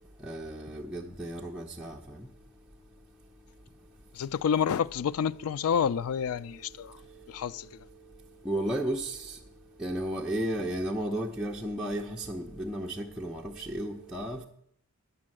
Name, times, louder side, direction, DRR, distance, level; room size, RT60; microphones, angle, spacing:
voice 1, 0.3-2.0 8.5-9.2 9.8-14.4, right 1 dB, 5° right, 0.6 m, -33 dB
voice 2, 4.1-7.0 7.3-7.8, left 7 dB, 80° left, 0.3 m, -29 dB
9.7 x 6.8 x 7.6 m
head